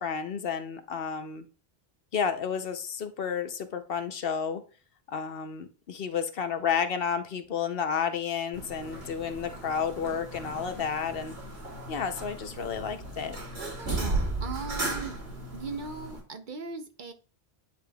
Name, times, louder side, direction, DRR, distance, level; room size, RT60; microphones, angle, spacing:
voice 1, 0.0-1.4 2.1-4.6 5.1-11.4 11.9-13.4, left 7 dB, 65° left, 9 dB, 0.9 m, -31 dB
sound 1, 8.5-16.2, right 2 dB, 75° right, 2.8 m, -35 dB
voice 2, 13.6-15.2 15.5-17.1, right 4 dB, 55° right, 8 dB, 0.8 m, -39 dB
9.6 x 5.0 x 2.3 m, 0.36 s
omnidirectional pair, 1.1 m